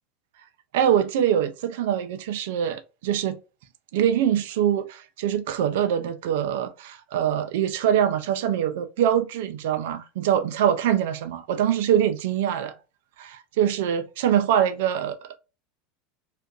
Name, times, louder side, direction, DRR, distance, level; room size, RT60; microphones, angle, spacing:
voice 1, 0.7-3.4 3.9-12.8 13.2-15.4, right 9 dB, 70° right, 0.4 m, -24 dB
2.5 x 2.3 x 2.2 m
hypercardioid pair, 85°, 0 cm